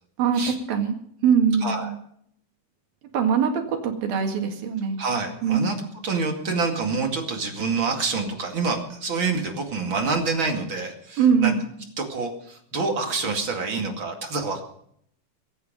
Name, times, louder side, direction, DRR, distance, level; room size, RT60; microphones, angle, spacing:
voice 1, 0.2-1.0 1.2-1.9 3.1-5.0 5.4-5.7 11.2-11.6, right 7 dB, 70° right, 4 dB, 3.6 m, -22 dB
voice 2, 5.0-5.8 6.0-11.5 12.0-14.6, right 4 dB, 35° right, 3 dB, 2.5 m, -27 dB
22.5 x 9.4 x 5.3 m, 0.67 s
omnidirectional pair, 4.5 m